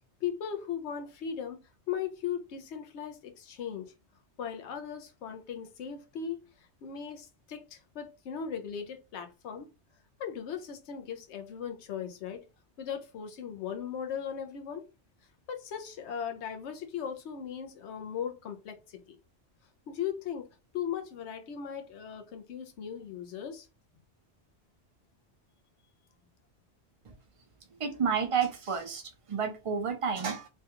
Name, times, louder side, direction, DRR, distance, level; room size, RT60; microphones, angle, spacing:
voice 1, 0.2-1.6 1.9-3.9 4.4-6.4 6.8-9.7 10.2-12.4 12.8-14.8 15.5-19.2 19.9-20.5 20.7-23.7, left 8 dB, 75° left, 1.0 m, -38 dB
voice 2, 27.8-29.0 29.3-30.5, right 6 dB, 40° right, 0.5 m, -30 dB
3.3 x 2.3 x 2.8 m
omnidirectional pair, 1.2 m